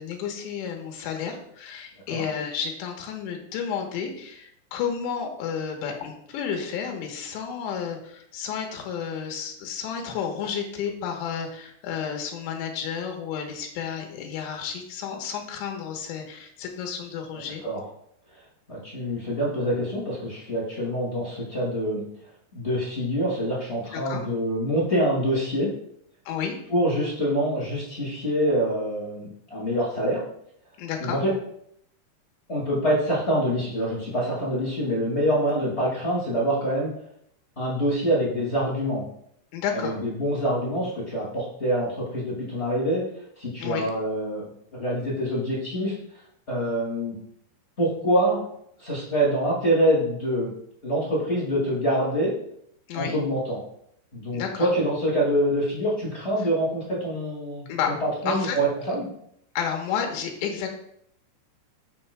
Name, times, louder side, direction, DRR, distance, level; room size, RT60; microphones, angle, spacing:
voice 1, 0.0-17.6 23.9-24.2 26.3-26.5 30.8-31.2 39.5-40.0 43.6-43.9 52.9-53.2 54.3-54.7 57.7-57.9 58.3-58.6 59.6-60.7, left 7 dB, 85° left, 3 dB, 3.3 m, -31 dB
voice 2, 18.7-22.0 22.5-25.7 26.7-30.2 31.0-31.3 32.5-36.9 37.5-39.1 39.7-43.0 43.4-45.9 46.5-47.2 47.8-48.4 48.8-50.5 50.8-52.3 52.9-53.6 54.1-59.1, equal, 60° left, -6 dB, 0.6 m, -25 dB
13.0 x 6.1 x 2.2 m, 0.71 s
omnidirectional pair, 5.0 m